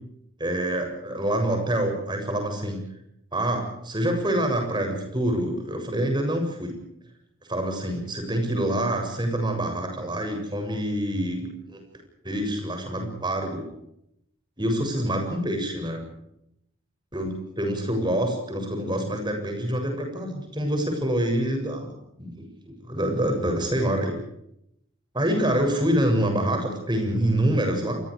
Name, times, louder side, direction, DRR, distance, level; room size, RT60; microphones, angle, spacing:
voice 1, 0.4-2.8 3.3-6.8 7.5-11.8 12.2-13.7 14.6-16.0 17.1-24.1 25.1-28.0, right 1 dB, 20° right, 4 dB, 7.5 m, -26 dB
29.5 x 24.5 x 5.0 m, 0.78 s
head